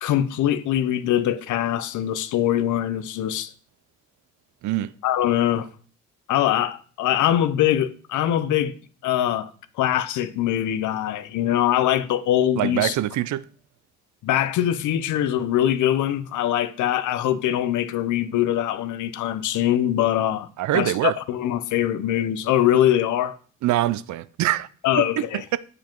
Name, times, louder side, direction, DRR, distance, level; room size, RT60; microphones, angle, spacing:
voice 1, 0.0-3.5 5.0-5.7 6.3-8.7 9.0-9.5 9.8-13.0 14.2-20.5 20.7-23.4 24.8-25.4, left 11 dB, 80° left, 0.7 m, -22 dB
voice 2, 12.6-13.4 20.6-21.1 23.6-24.7 25.0-25.2, right 14 dB, 70° right, 0.5 m, -24 dB
7.3 x 5.0 x 4.5 m
cardioid pair, 90°, 30 cm